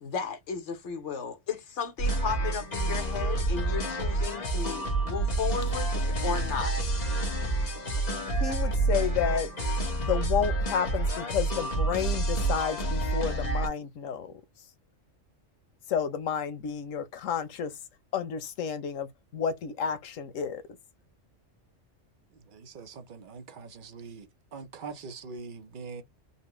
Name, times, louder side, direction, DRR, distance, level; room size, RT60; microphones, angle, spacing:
voice 1, 0.0-6.7, left 6 dB, 65° left, 1.2 m, -34 dB
sound 1, 2.0-13.7, right 2 dB, 35° left, 1.2 m, -28 dB
voice 2, 8.4-9.5 10.0-14.3 15.9-17.7 18.1-19.1 19.3-20.6, left 8 dB, 90° left, 1.1 m, -31 dB
voice 3, 22.5-26.0, right 4 dB, 45° right, 0.8 m, -43 dB
4.0 x 2.2 x 3.0 m
omnidirectional pair, 1.3 m